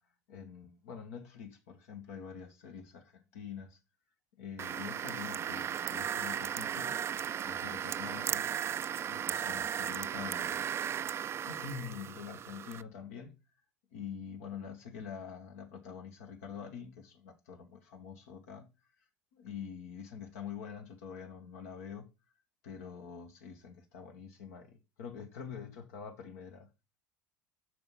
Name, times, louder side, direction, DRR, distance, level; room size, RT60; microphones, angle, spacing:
voice 1, 0.3-3.8 4.4-7.0 7.4-8.5 9.0-10.6 11.4-13.4 13.9-18.7 19.3-22.1 22.6-26.7, left 7 dB, 75° left, 1.4 m, -45 dB
sound 1, 4.6-12.8, right 9 dB, 35° right, 0.3 m, -36 dB
6.2 x 5.0 x 5.5 m
hypercardioid pair, 75°, 8 cm